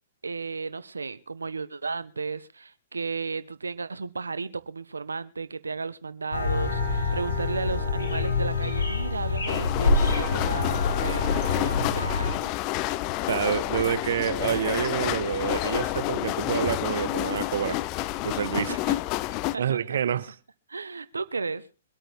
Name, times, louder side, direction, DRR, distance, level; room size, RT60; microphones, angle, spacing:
voice 1, 0.2-12.5 18.6-19.0 19.3-20.2 20.7-21.6, right 4 dB, 90° right, 1.1 m, -34 dB
sound 1, 6.3-12.3, left 3 dB, 80° left, 6.9 m, -26 dB
sound 2, 9.5-19.6, left 17 dB, 35° left, 0.6 m, -29 dB
voice 2, 13.3-17.8 18.2-18.7 19.6-20.3, right 9 dB, 65° right, 1.2 m, -27 dB
24.5 x 8.9 x 3.6 m
hypercardioid pair, 125°, 0 cm